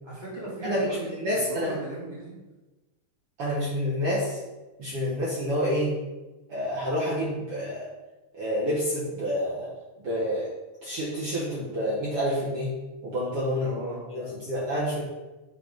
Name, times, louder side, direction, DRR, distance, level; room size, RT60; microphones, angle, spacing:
voice 1, 0.0-2.4 13.6-14.0, right 1 dB, 10° left, -9 dB, 1.3 m, -37 dB
voice 2, 0.6-1.7 3.4-4.4 4.8-6.0 6.5-7.9 8.3-9.7 10.0-10.5 10.8-12.7 13.0-13.7 14.1-15.0, equal, 60° right, -6 dB, 1.6 m, -28 dB
7.7 x 3.9 x 3.9 m, 1.1 s
omnidirectional pair, 3.7 m